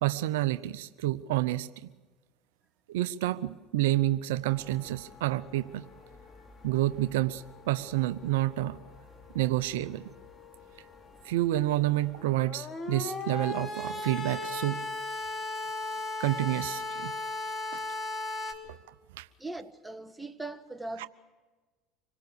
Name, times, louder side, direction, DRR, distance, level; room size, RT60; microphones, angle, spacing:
voice 1, 0.0-1.7 2.9-5.8 6.6-8.8 9.3-10.0 11.2-14.8 16.2-17.1 17.7-17.8 19.1-19.3, right 15 dB, 80° right, 0.6 m, -29 dB
sound 1, 4.4-18.5, left 2 dB, 25° left, 2.9 m, -39 dB
voice 2, 19.4-21.1, right 2 dB, 10° right, 1.3 m, -40 dB
26.0 x 18.0 x 6.8 m
supercardioid pair, 90°, 0 cm